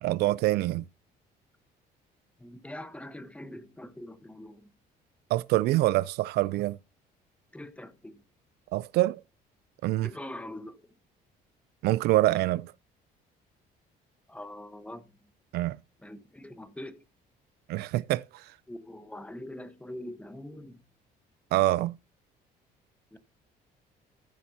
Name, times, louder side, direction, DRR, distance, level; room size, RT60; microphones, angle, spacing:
voice 1, 0.0-0.8 5.3-6.8 8.7-9.2 9.8-10.1 11.8-12.7 15.5-15.8 17.7-18.5 21.5-22.0, right 16 dB, 75° right, 0.4 m, -25 dB
voice 2, 2.4-4.7 7.5-8.2 10.0-11.0 14.3-15.1 16.0-17.0 18.7-20.8 23.1-23.2, left 1 dB, 5° left, 1.1 m, -43 dB
14.0 x 7.2 x 2.8 m
cardioid pair, 110°, 17 cm